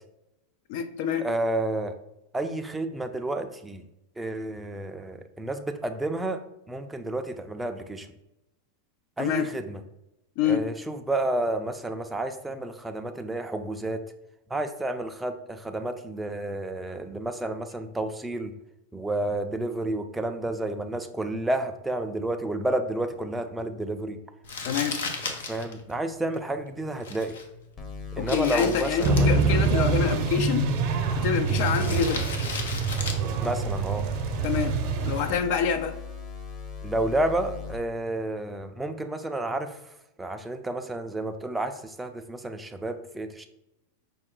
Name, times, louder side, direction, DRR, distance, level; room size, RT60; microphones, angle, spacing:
voice 1, 0.7-1.3 9.2-9.5 10.4-10.6 24.6-25.0 28.2-30.7 31.1-32.3 34.4-34.7 35.1-36.0, left 7 dB, 60° left, 9 dB, 0.4 m, -26 dB
voice 2, 1.2-2.0 2.3-3.8 4.2-6.4 6.7-8.1 9.2-9.8 10.4-14.0 14.5-18.5 18.9-24.2 25.3-27.3 28.1-29.3 33.4-34.0 36.8-39.8 40.2-43.5, right 1 dB, 5° right, 6 dB, 0.4 m, -30 dB
Crumpling crinkling, 24.4-34.6, left 4 dB, 90° left, 0.7 m, -38 dB
sound 1, 27.8-37.8, left 5 dB, 25° left, 0.7 m, -40 dB
sound 2, 29.0-35.4, right 4 dB, 55° right, 0.7 m, -25 dB
5.3 x 2.2 x 3.7 m, 0.86 s
supercardioid pair, 130°, 0 cm